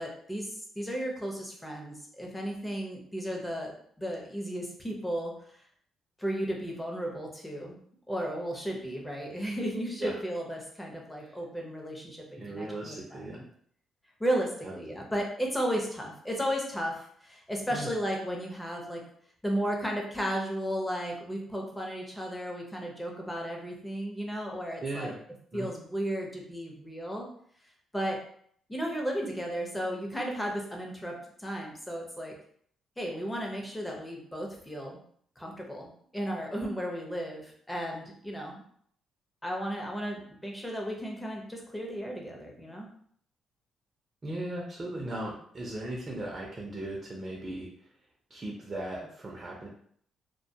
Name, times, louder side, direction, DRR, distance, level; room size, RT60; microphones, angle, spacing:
voice 1, 0.0-5.3 6.2-7.8 8.1-13.4 14.2-19.0 19.4-25.1 25.5-27.3 27.9-28.2 28.7-32.3 33.0-35.0 35.4-38.6 39.4-42.9, equal, 10° left, 0 dB, 0.6 m, -34 dB
voice 2, 12.4-13.4 14.6-14.7 17.7-17.9 24.8-25.1 25.5-25.7 44.2-47.7 48.3-49.7, right 1 dB, 35° right, -1 dB, 0.5 m, -37 dB
2.2 x 2.2 x 2.7 m, 0.63 s
cardioid pair, 90°, 0 cm